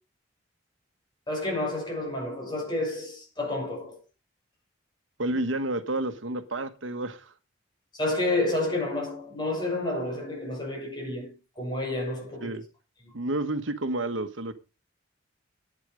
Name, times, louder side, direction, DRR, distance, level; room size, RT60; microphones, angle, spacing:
voice 1, 1.3-4.0 5.3-5.4 7.9-12.6, left 2 dB, 20° left, 5.6 m, -30 dB
voice 2, 5.2-7.3 12.4-12.6 13.1-14.5, right 2 dB, 80° right, 1.3 m, -30 dB
11.5 x 8.9 x 5.0 m
head